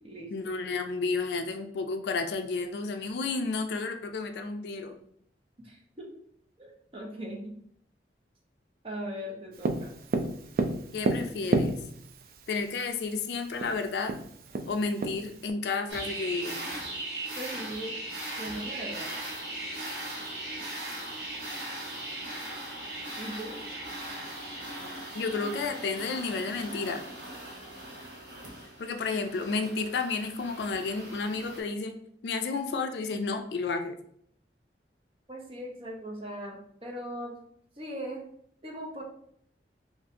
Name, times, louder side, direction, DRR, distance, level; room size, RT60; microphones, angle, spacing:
voice 1, 0.3-5.0 10.9-11.8 12.5-14.1 14.7-16.6 25.1-27.0 28.8-34.0, left 4 dB, 75° left, 6 dB, 0.3 m, -31 dB
voice 2, 5.6-6.1 6.6-7.5 8.8-9.9 17.4-18.0 18.4-19.1 23.2-23.5 35.3-37.4 37.8-38.2 38.6-39.0, equal, 30° right, -1 dB, 0.7 m, -39 dB
Tap, 9.6-12.2 13.2-13.3 13.6-13.7 14.1-15.5, right 2 dB, 55° right, 0.3 m, -29 dB
sound 1, 15.9-31.6, right 1 dB, 70° right, 1.4 m, -39 dB
2.6 x 2.4 x 4.1 m, 0.66 s
head